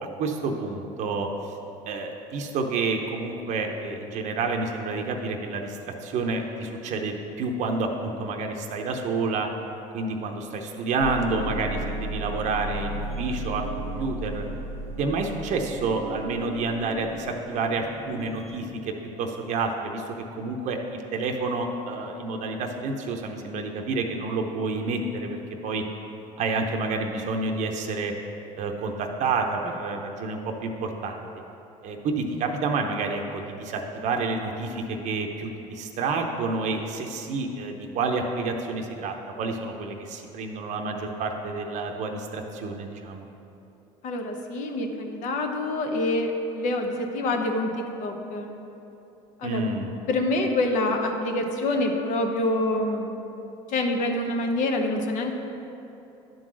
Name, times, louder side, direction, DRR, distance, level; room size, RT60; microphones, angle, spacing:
voice 1, 0.2-1.3 1.9-9.5 9.9-14.4 15.0-18.9 19.2-25.4 25.6-25.8 26.4-28.1 28.6-31.2 31.8-43.3 49.4-49.9, right 3 dB, 55° right, 3 dB, 0.7 m, -29 dB
sound 1, 11.0-18.7, right 1 dB, 20° left, 1.3 m, -35 dB
voice 2, 44.0-48.5 49.4-49.6 50.1-53.1 53.7-55.4, left 2 dB, 60° left, 3 dB, 0.9 m, -26 dB
10.5 x 3.9 x 6.2 m, 3.0 s
supercardioid pair, 95°, 15 cm